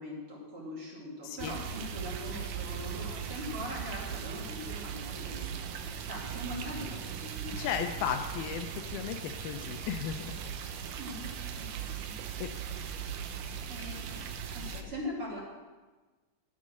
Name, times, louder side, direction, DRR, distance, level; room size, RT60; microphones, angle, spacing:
voice 1, 0.0-7.7 10.9-12.6 13.7-14.2 14.5-15.4, left 1 dB, 35° right, -5 dB, 3.2 m, -42 dB
voice 2, 1.2-1.5 7.5-10.4 12.4-12.5, left 9 dB, 80° left, 6 dB, 2.4 m, -35 dB
sound 1, 1.4-14.8, right 7 dB, 75° right, 1.9 m, -39 dB
12.5 x 7.6 x 6.3 m, 1.3 s
omnidirectional pair, 4.6 m